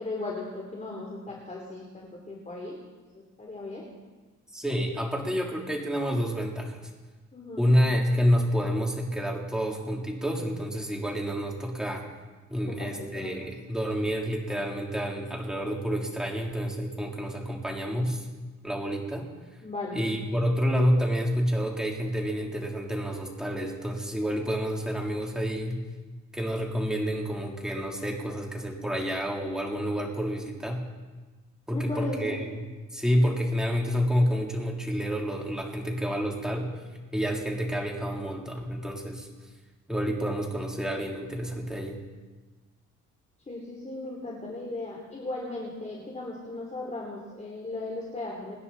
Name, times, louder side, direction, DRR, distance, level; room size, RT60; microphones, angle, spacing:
voice 1, 0.0-2.8 3.1-3.8 7.3-7.7 12.7-13.3 19.6-20.1 31.7-32.4 43.5-48.5, left 2 dB, 25° left, -2 dB, 3.4 m, -37 dB
voice 2, 4.5-6.8 7.6-12.0 12.5-18.3 18.6-19.3 19.9-25.8 26.3-30.8 31.7-32.6 32.9-36.7 37.1-39.3 39.9-42.0, equal, ahead, -1 dB, 3.4 m, -28 dB
25.0 x 10.0 x 4.2 m, 1.3 s
cardioid pair, 90°, 30 cm